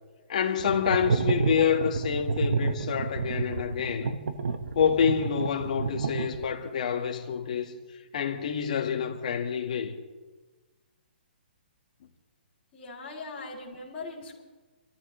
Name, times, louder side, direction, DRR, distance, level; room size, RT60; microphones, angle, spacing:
voice 1, 0.3-4.2 4.7-7.7 8.1-9.9, left 7 dB, 40° left, 1.5 m, -27 dB
sound 1, 0.6-6.7, right 4 dB, 60° right, 1.2 m, -29 dB
sound 2, 1.2-6.8, right 4 dB, 45° right, 1.9 m, -45 dB
voice 2, 12.7-14.4, left 3 dB, 15° left, 3.2 m, -40 dB
26.0 x 14.0 x 3.1 m
hypercardioid pair, 175°, 6 cm